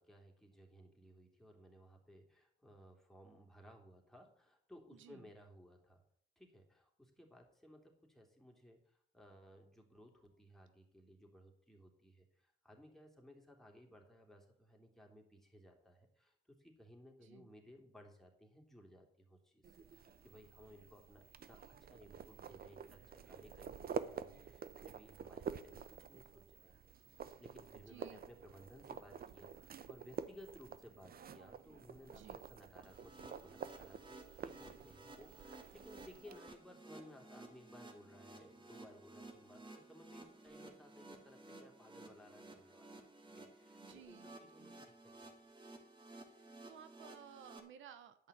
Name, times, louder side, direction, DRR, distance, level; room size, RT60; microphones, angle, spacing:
voice 1, 0.0-6.0 6.4-34.0 34.4-42.9 43.2-45.5, equal, ahead, 0 dB, 3.2 m, -60 dB
voice 2, 4.9-5.3 17.2-17.5 27.9-28.2 32.1-32.4 43.8-44.9 46.3-48.3, right 9 dB, 75° right, 10 dB, 1.0 m, -58 dB
sound 1, 19.6-36.4, right 7 dB, 50° right, 0.9 m, -49 dB
sound 2, 32.8-47.6, right 2 dB, 25° right, 2.4 m, -56 dB
11.0 x 5.6 x 8.6 m, 0.67 s
cardioid pair, 90°, 20 cm